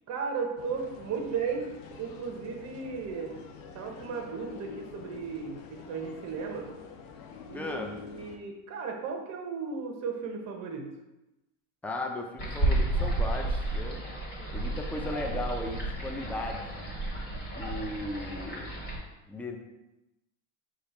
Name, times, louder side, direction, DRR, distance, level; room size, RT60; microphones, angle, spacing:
voice 1, 0.1-1.7 2.0-3.4 3.7-6.7 7.5-10.9, right 5 dB, 45° right, 2 dB, 0.9 m, -35 dB
sound 1, 0.6-8.4, left 6 dB, 65° left, 0.7 m, -47 dB
voice 2, 7.5-8.0 11.8-14.0 14.5-16.7 17.5-18.7 19.3-19.6, left 2 dB, 5° left, 2 dB, 0.3 m, -36 dB
sound 2, 12.4-19.0, right 2 dB, 25° left, 1.5 m, -32 dB
5.1 x 2.4 x 4.2 m, 0.98 s
supercardioid pair, 125°, 39 cm